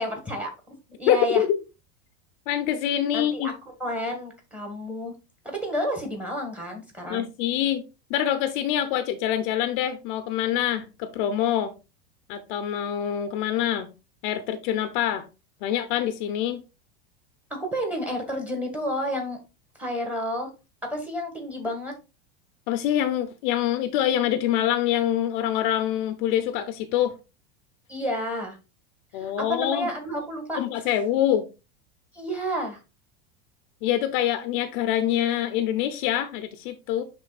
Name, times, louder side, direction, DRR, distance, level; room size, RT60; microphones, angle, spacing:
voice 1, 0.0-1.4 3.1-3.5 3.8-5.1 5.4-7.3 17.5-19.4 19.8-20.5 20.9-21.9 27.9-28.6 29.1-30.6 32.1-32.8, equal, 5° right, 1.7 m, -30 dB
voice 2, 1.1-1.6 2.5-3.5 7.1-7.8 8.1-11.7 12.3-13.9 14.2-15.3 15.6-16.6 22.7-27.1 29.1-29.9 30.6-31.5 33.8-37.0, left 11 dB, 50° left, 0.7 m, -25 dB
11.0 x 3.8 x 2.4 m
supercardioid pair, 165°, 33 cm